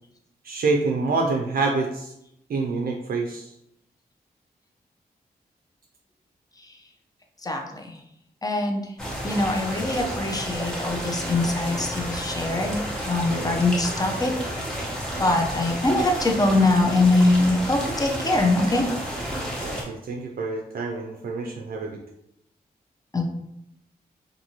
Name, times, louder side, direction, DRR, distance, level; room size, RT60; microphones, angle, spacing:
voice 1, 0.4-2.1 2.5-3.5 13.3-13.6 19.6-22.0, right 3 dB, 60° right, 0 dB, 0.4 m, -27 dB
voice 2, 7.4-8.0 8.4-8.8 9.2-14.3 15.2-18.8 23.1-23.3, left 2 dB, 20° left, 2 dB, 0.6 m, -23 dB
sound 1, 9.0-19.8, equal, 5° left, 1.0 m, -31 dB
2.6 x 2.6 x 2.8 m, 0.80 s
cardioid pair, 50°, 17 cm